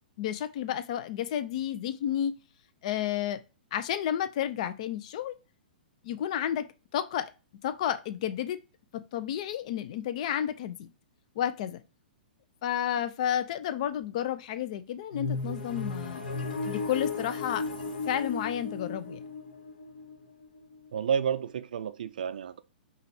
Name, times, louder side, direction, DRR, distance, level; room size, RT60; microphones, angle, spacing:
voice 1, 0.2-2.4 2.8-3.4 3.7-5.4 6.0-6.7 6.9-7.3 7.6-8.6 8.9-10.9 11.4-11.8 12.6-16.3 16.6-17.7 18.1-19.2, left 10 dB, 45° left, 0.5 m, -31 dB
sound 1, 15.1-20.9, left 3 dB, 60° left, 1.3 m, -35 dB
voice 2, 20.9-22.6, right 7 dB, 60° right, 0.3 m, -30 dB
5.6 x 2.4 x 3.3 m
figure-of-eight pair, 110°, 5 cm